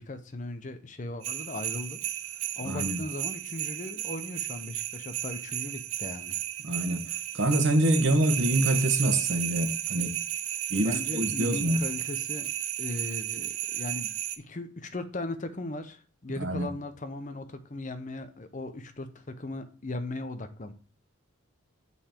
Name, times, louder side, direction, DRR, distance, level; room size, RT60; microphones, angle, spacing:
voice 1, 0.0-2.0 2.3-6.4 10.8-12.5 12.8-20.7, left 2 dB, 35° left, 10 dB, 0.7 m, -38 dB
sound 1, 1.2-14.4, right 12 dB, 75° right, 0.6 m, -33 dB
voice 2, 2.6-3.0 6.6-7.1 7.3-10.1 10.7-11.8 16.4-16.7, right 1 dB, 60° right, 7 dB, 1.2 m, -26 dB
6.8 x 5.5 x 4.4 m, 0.39 s
head